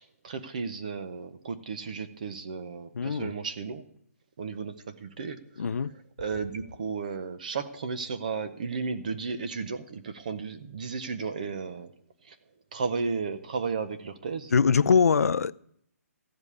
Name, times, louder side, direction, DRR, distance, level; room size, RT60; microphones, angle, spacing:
voice 1, 0.0-3.8 4.4-5.6 6.2-11.9 12.2-12.4 12.7-14.5, right 5 dB, 30° right, 0.7 m, -34 dB
voice 2, 2.9-3.3 5.6-5.9 14.5-15.5, left 6 dB, 70° left, 0.5 m, -22 dB
14.5 x 5.3 x 9.6 m
hypercardioid pair, 175°, 9 cm